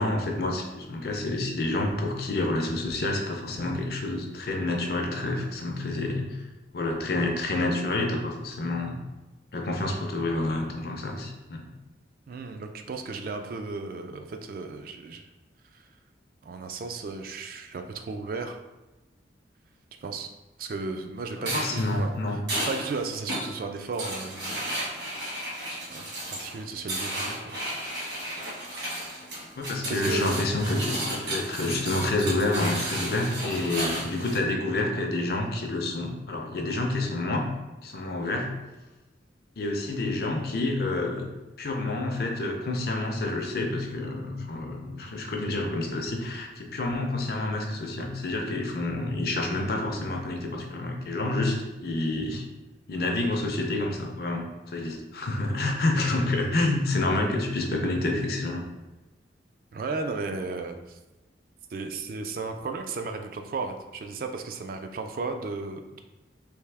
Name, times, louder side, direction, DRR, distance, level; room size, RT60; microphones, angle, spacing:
voice 1, 0.0-6.4 6.7-9.0 9.5-11.7 21.4-22.4 29.6-37.5 37.8-38.5 39.6-41.3 41.6-52.5 52.9-58.6, left 2 dB, 55° left, 2 dB, 0.5 m, -28 dB
voice 2, 12.3-15.2 15.7-15.9 16.4-18.6 20.0-20.3 20.6-24.6 25.9-26.0 26.3-27.6 29.9-30.4 59.7-61.0 61.7-66.0, right 3 dB, 50° right, 5 dB, 0.3 m, -35 dB
sound 1, 21.4-34.4, right 1 dB, 70° right, 1.5 m, -33 dB
3.4 x 2.7 x 3.3 m, 1.1 s
head